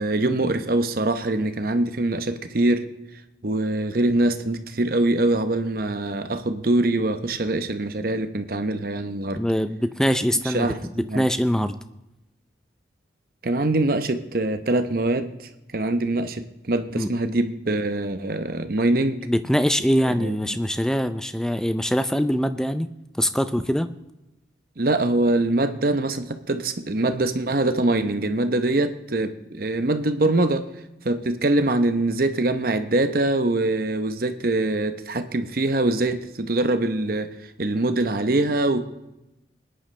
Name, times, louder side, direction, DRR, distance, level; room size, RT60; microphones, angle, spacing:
voice 1, 0.0-2.9 3.4-9.4 10.4-10.8 11.1-11.2 13.4-19.3 20.1-20.6 24.8-30.7 31.0-37.3 37.6-38.8, right 2 dB, 50° right, 9 dB, 0.8 m, -23 dB
voice 2, 9.4-11.8 17.0-17.1 19.3-22.9 23.2-23.9, equal, 5° left, 11 dB, 0.4 m, -23 dB
20.5 x 10.0 x 3.3 m, 0.95 s
head